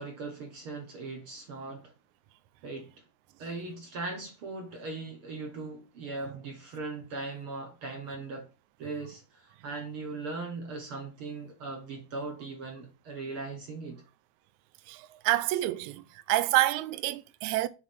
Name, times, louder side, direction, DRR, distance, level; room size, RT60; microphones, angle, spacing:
voice 1, 0.0-1.9 2.6-2.9 3.4-8.5 8.8-14.0, right 3 dB, 55° right, 1.6 m, -39 dB
voice 2, 14.9-17.7, right 16 dB, 80° right, 1.7 m, -28 dB
7.2 x 4.1 x 5.8 m
omnidirectional pair, 4.0 m